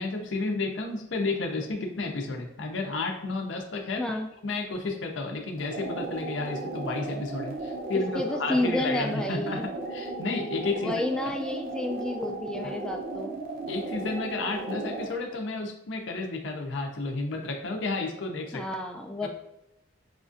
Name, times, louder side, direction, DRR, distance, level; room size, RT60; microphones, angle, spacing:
voice 1, 0.0-4.0 4.4-9.6 9.9-10.9 11.3-11.4 12.6-12.7 13.7-18.6 19.2-19.3, left 3 dB, 85° left, 3 dB, 0.6 m, -32 dB
voice 2, 4.0-4.3 8.1-9.6 10.8-13.3 18.5-19.3, left 1 dB, 5° left, 2 dB, 0.3 m, -30 dB
sound 1, 5.6-15.2, right 2 dB, 50° right, 0.6 m, -35 dB
4.9 x 2.4 x 2.5 m, 0.86 s
head